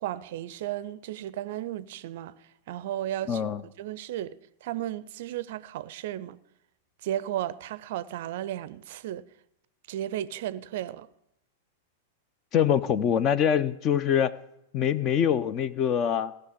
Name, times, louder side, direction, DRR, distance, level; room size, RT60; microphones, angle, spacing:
voice 1, 0.0-2.3 2.7-6.4 7.0-9.2 9.9-11.1, right 12 dB, 50° right, 0.5 m, -34 dB
voice 2, 3.3-3.6 12.5-14.3 14.7-16.3, left 9 dB, 30° left, 0.6 m, -24 dB
16.5 x 6.5 x 9.7 m
figure-of-eight pair, 95°, 0 cm